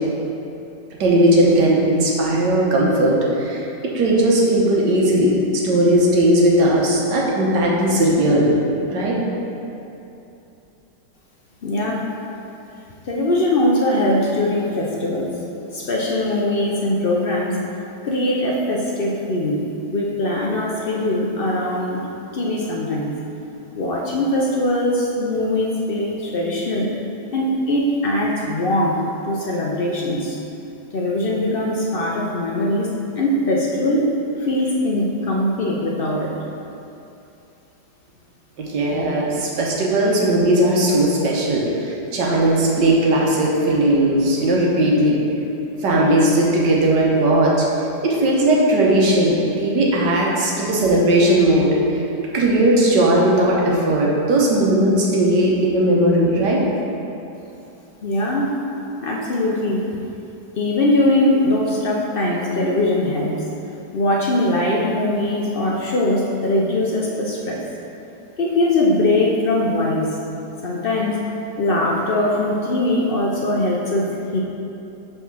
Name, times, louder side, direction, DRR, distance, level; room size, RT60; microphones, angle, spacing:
voice 1, 1.0-8.5 8.9-9.2 38.6-45.2 45.8-47.7 48.0-52.0 52.3-56.6, right 1 dB, 85° right, -3 dB, 1.7 m, -17 dB
voice 2, 11.6-12.0 13.0-15.3 15.7-17.6 18.0-19.7 19.9-22.1 22.3-23.2 23.7-26.9 27.3-30.4 30.9-34.1 34.4-36.3 58.0-58.5 59.0-60.0 60.6-63.4 63.9-67.6 68.4-70.2 70.6-71.3 71.6-74.4, left 1 dB, 65° left, -3 dB, 0.5 m, -21 dB
5.7 x 4.2 x 6.1 m, 2.9 s
omnidirectional pair, 1.8 m